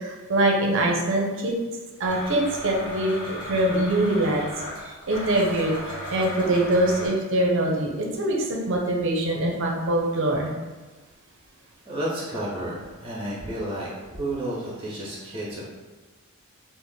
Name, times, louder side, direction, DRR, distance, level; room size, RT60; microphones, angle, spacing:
voice 1, 0.0-1.6 2.0-4.4 4.8-5.7 6.1-10.5, right 1 dB, 60° right, -1 dB, 0.6 m, -23 dB
Domestic sounds home sounds, 2.0-7.1, equal, 20° left, 1.2 m, -36 dB
voice 2, 11.8-15.7, right 1 dB, 25° right, -6 dB, 1.0 m, -31 dB
4.0 x 2.1 x 3.4 m, 1.3 s
head